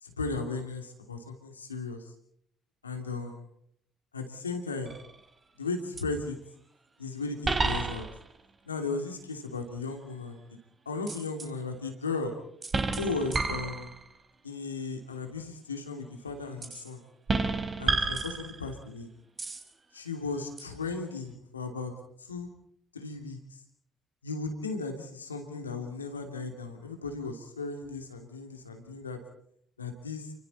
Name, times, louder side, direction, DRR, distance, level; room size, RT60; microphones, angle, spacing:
voice 1, 0.0-2.1 2.8-3.4 4.1-4.9 5.6-6.4 7.0-8.1 8.6-10.4 10.8-12.3 12.9-13.9 14.4-17.0 17.8-19.1 19.9-21.9 22.2-22.5 22.9-23.6 24.2-29.2 29.8-30.3, left 3 dB, 90° left, 5 dB, 2.8 m, -36 dB
sound 1, 4.8-5.3 6.0-6.1 7.4-8.4 11.1-11.5 12.6-14.2 16.6-16.9 17.3-18.8 19.4-19.7 20.6-20.7, right 3 dB, 35° right, 4.1 m, -30 dB
29.5 x 24.5 x 4.3 m, 0.69 s
figure-of-eight pair, 50°, 0 cm